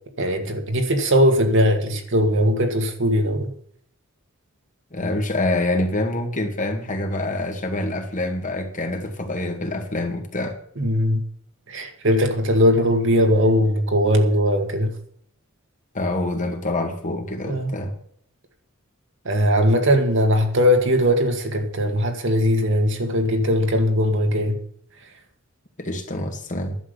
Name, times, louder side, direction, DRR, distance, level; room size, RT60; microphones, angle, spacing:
voice 1, 0.2-3.5 10.8-11.2 11.7-14.9 17.4-17.7 19.3-24.6, equal, 65° right, 2.1 m, -19 dB
voice 2, 4.9-10.6 15.9-17.9 25.8-26.8, left 2 dB, 40° left, 2.1 m, -26 dB
11.0 x 7.5 x 8.3 m
head